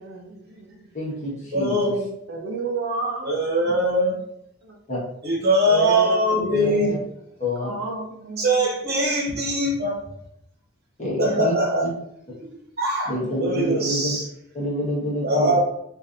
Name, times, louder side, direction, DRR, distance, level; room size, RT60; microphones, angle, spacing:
voice 1, 0.0-0.9 2.3-3.3 3.6-3.7 4.6-4.8 5.7-6.7 7.6-8.6 11.1-11.7 13.3-13.4, right 3 dB, 65° right, 0 dB, 0.6 m, -32 dB
voice 2, 0.9-1.9 4.9-5.0 6.5-7.0 7.4-7.8 11.0-11.5 13.1-14.1 14.5-15.6, left 1 dB, 35° left, -5 dB, 1.2 m, -27 dB
voice 3, 1.5-2.1 3.2-4.2 5.2-7.0 8.4-10.0 11.2-11.9 12.4-13.1 13.4-14.2 15.2-15.6, right 1 dB, 45° right, -3 dB, 1.1 m, -22 dB
4.0 x 2.6 x 2.5 m, 0.75 s
head